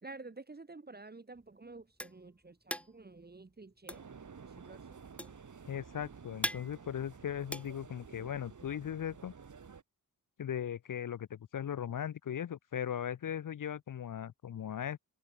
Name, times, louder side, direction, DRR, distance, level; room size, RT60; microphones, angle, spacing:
voice 1, 0.0-4.1 4.4-5.0, right 3 dB, 25° right, 1.6 m, -50 dB
sound 1, 1.3-8.5, left 1 dB, 5° left, 1.0 m, -42 dB
sound 2, 3.9-9.8, right 6 dB, 50° right, 2.2 m, -52 dB
voice 2, 5.7-9.3 10.4-15.0, left 9 dB, 55° left, 0.6 m, -38 dB
wide cardioid pair, 155°, 38 cm